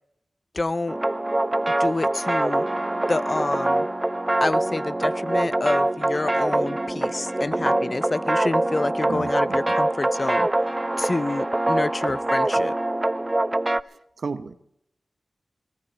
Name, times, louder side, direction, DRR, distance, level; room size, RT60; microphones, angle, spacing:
voice 1, 0.5-1.0 1.8-2.7 3.1-3.9 4.4-10.5 11.0-12.7, left 2 dB, 40° left, 16 dB, 0.5 m, -28 dB
sound 1, 0.9-13.8, right 1 dB, 25° right, 0.6 m, -24 dB
voice 2, 9.1-9.6 12.1-12.2 14.2-14.5, right 4 dB, 80° right, 10 dB, 0.9 m, -32 dB
20.0 x 14.0 x 4.6 m, 0.75 s
cardioid pair, 50°, 0 cm